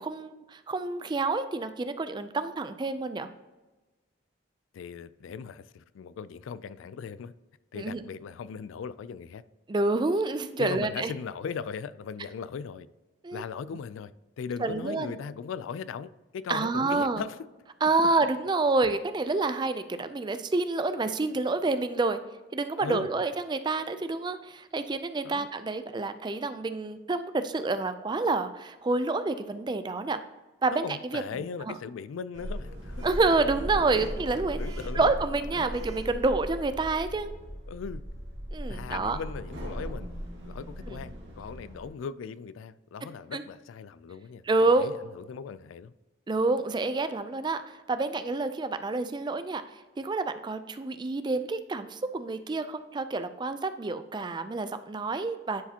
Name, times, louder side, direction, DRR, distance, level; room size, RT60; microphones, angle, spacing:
voice 1, 0.0-3.3 7.7-8.0 9.7-11.1 13.2-13.4 14.6-15.1 16.5-17.2 17.8-22.2 22.5-30.2 30.6-31.2 31.7-31.8 33.0-34.6 34.9-37.3 38.5-39.2 40.9-41.0 43.3-43.4 44.4-44.9 46.3-49.6 50.0-55.6, right 3 dB, 25° right, 0.3 m, -28 dB
voice 2, 4.7-7.3 7.7-9.4 10.6-12.9 13.3-17.4 22.8-23.1 25.2-25.5 30.7-33.1 33.9-34.1 34.6-35.0 35.5-35.7 37.7-38.0 38.7-40.1 40.4-45.9, left 6 dB, 90° left, 0.3 m, -38 dB
Sliding door, 32.3-41.9, equal, 70° right, 1.8 m, -38 dB
10.0 x 4.8 x 2.8 m
head